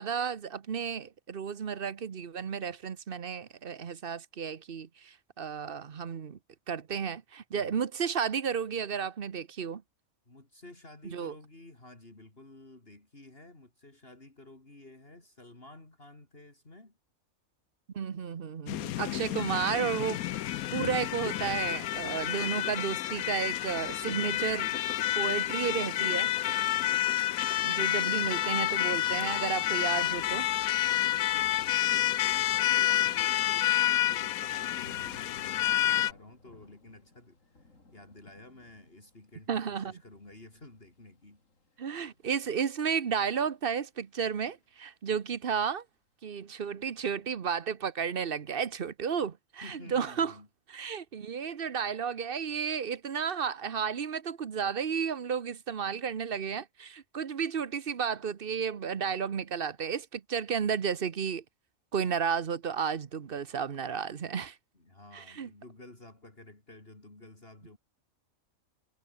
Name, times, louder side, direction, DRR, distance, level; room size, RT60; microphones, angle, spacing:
voice 1, 0.0-6.4 6.7-9.8 11.1-11.3 17.9-20.2 20.7-24.7 25.1-26.3 27.6-30.5 39.5-39.9 41.8-45.8 46.2-50.3 50.7-61.4 61.9-64.6 65.1-65.5, right 7 dB, 45° right, 1.1 m, -32 dB
voice 2, 7.5-7.8 10.3-17.0 18.9-19.6 20.0-20.1 27.8-28.5 30.9-41.4 49.6-50.5 64.7-67.8, left 2 dB, 40° left, 4.2 m, -52 dB
sound 1, 18.7-36.1, left 14 dB, 90° left, 1.1 m, -29 dB
Thunder / Rain, 34.2-45.2 45.6-46.0, left 3 dB, 65° left, 4.5 m, -59 dB
omnidirectional pair, 1.5 m